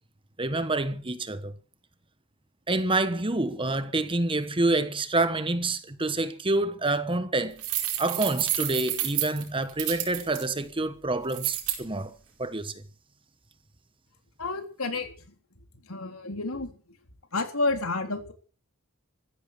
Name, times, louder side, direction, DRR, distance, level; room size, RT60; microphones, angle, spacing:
voice 1, 0.4-1.5 2.7-7.6 8.0-12.7, right 2 dB, 25° right, 1.2 m, -27 dB
sound 1, 7.6-10.4 11.3-11.8, right 12 dB, 90° right, 4.9 m, -29 dB
voice 2, 14.4-15.1 15.9-16.7 17.3-18.3, left 3 dB, 80° left, 3.7 m, -30 dB
15.0 x 14.0 x 6.7 m
head